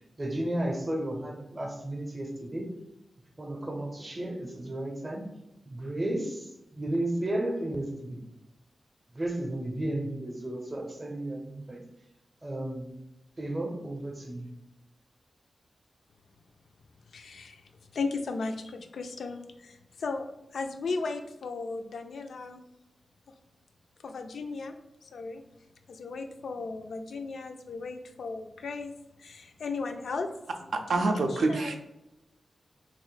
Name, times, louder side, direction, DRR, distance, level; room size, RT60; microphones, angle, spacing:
voice 1, 0.2-2.7 3.4-5.3 5.6-8.2 9.1-11.8 12.4-12.9 13.4-14.5, right 1 dB, 25° right, 2 dB, 0.6 m, -33 dB
voice 2, 17.1-20.2 20.5-22.6 24.0-24.7 25.0-25.4 25.9-28.9 29.2-30.3 30.8-31.8, left 4 dB, 80° left, 6 dB, 0.3 m, -36 dB
voice 3, 30.9-31.8, right 2 dB, 85° right, 4 dB, 0.4 m, -26 dB
3.0 x 2.5 x 3.9 m, 0.91 s
wide cardioid pair, 150°, 0 cm